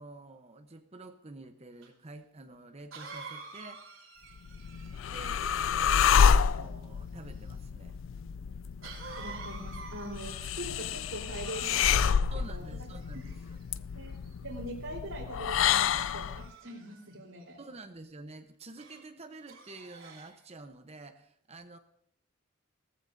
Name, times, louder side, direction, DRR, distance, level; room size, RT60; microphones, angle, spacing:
voice 1, 0.0-4.0 5.0-8.0 12.3-13.6 17.6-21.8, right 2 dB, 30° right, 7 dB, 0.8 m, -48 dB
Cough, 1.8-1.9 2.9-5.3 8.8-10.6 11.3-12.2 13.0-13.6 14.2-14.5 15.5-17.1 18.8-19.0 19.5-20.4, right 4 dB, 70° right, 3.2 m, -48 dB
sound 1, 4.4-16.5, left 7 dB, 65° left, 0.4 m, -29 dB
voice 2, 9.2-12.8 13.9-17.6, right 1 dB, 85° right, -7 dB, 3.7 m, -43 dB
18.0 x 14.5 x 2.7 m, 0.70 s
head